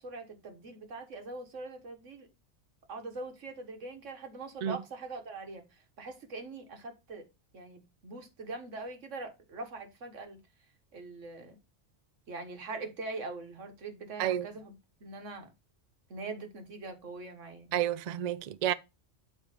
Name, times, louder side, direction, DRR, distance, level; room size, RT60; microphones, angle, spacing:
voice 1, 0.0-2.3 2.9-5.6 6.0-7.2 7.5-10.4 10.9-11.6 12.3-14.8 15.0-15.5 16.1-17.8, right 3 dB, 85° right, 1.6 m, -42 dB
voice 2, 17.7-18.7, right 11 dB, 65° right, 0.4 m, -30 dB
8.0 x 3.3 x 4.9 m
omnidirectional pair, 1.2 m